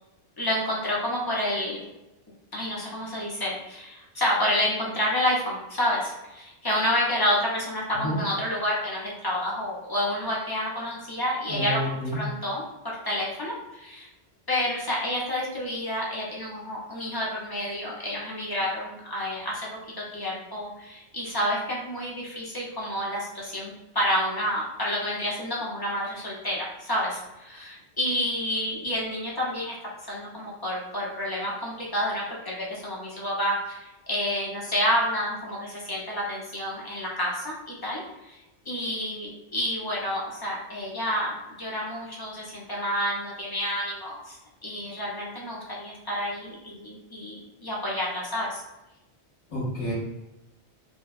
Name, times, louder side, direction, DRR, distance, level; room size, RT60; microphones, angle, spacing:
voice 1, 0.4-1.8 2.5-14.1 14.5-19.7 20.0-29.8 30.1-38.4 38.7-41.3 41.6-48.6, equal, 30° left, -5 dB, 0.4 m, -29 dB
voice 2, 11.5-12.2 49.5-49.9, equal, 90° left, -8 dB, 1.4 m, -29 dB
3.1 x 2.1 x 2.3 m, 0.97 s
omnidirectional pair, 1.2 m